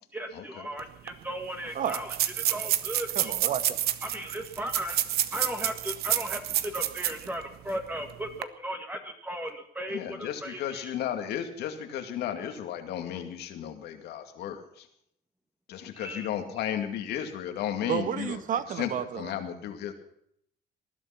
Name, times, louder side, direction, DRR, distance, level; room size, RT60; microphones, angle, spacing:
voice 1, 0.1-3.3 4.0-5.0 5.3-11.0 15.9-16.3, right 1 dB, 10° right, 4 dB, 1.8 m, -36 dB
sound 1, 0.8-0.9 1.1-1.2 1.8-7.3 7.7-7.8 8.3-8.4, right 13 dB, 70° right, 1.0 m, -29 dB
voice 2, 1.7-2.2 3.1-3.6 17.9-19.3, right 9 dB, 50° right, 13 dB, 1.2 m, -31 dB
voice 3, 9.9-14.9 15.7-18.4 18.8-18.9 19.2-19.9, left 10 dB, 80° left, 6 dB, 2.4 m, -34 dB
19.5 x 11.5 x 5.9 m, 0.71 s
cardioid pair, 110°, 17 cm